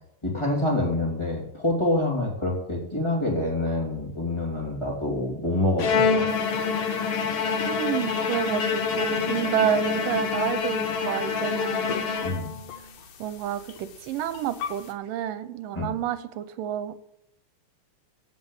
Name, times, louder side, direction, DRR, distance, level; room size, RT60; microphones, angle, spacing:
voice 1, 0.2-6.2 12.2-12.5 15.7-15.9, left 1 dB, 10° left, -2 dB, 2.4 m, -26 dB
Bowed string instrument, 5.8-12.8, left 5 dB, 60° left, 1.8 m, -26 dB
sound 1, 6.3-14.9, left 6 dB, 85° left, 3.0 m, -43 dB
voice 2, 7.7-12.0 13.2-16.9, right 10 dB, 80° right, 13 dB, 2.4 m, -29 dB
15.0 x 5.5 x 8.1 m, 0.76 s
omnidirectional pair, 3.9 m